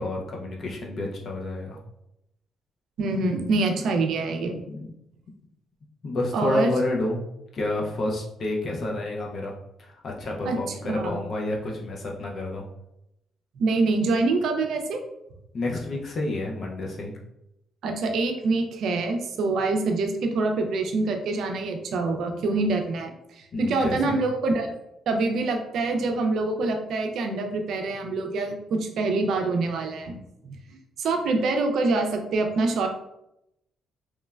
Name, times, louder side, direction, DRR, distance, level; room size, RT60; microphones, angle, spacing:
voice 1, 0.0-1.8 4.7-4.9 6.0-7.2 7.5-9.5 9.8-12.6 15.5-17.1 23.5-24.2, left 2 dB, 50° left, -1 dB, 0.4 m, -29 dB
voice 2, 3.0-4.5 6.3-6.7 10.4-10.6 10.8-11.2 13.6-15.0 17.8-24.7 25.1-30.2 30.4-32.9, right 3 dB, 70° right, 4 dB, 0.4 m, -25 dB
3.0 x 2.1 x 2.3 m, 0.84 s
cardioid pair, 90°, 0 cm